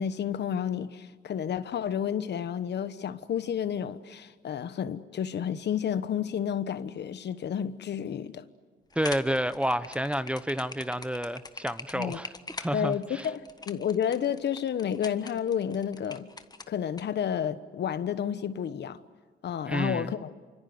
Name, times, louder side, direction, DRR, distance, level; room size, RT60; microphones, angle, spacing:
voice 1, 0.0-8.4 11.9-12.2 12.7-16.3 16.7-19.0 19.4-20.3, left 8 dB, 60° left, 1.2 m, -31 dB
sound 1, 8.9-17.0, left 3 dB, 20° left, 1.3 m, -43 dB
voice 2, 9.0-12.3 12.6-13.3 19.7-20.1, equal, 5° right, 0.8 m, -30 dB
27.0 x 25.5 x 7.9 m
cardioid pair, 90°, 20 cm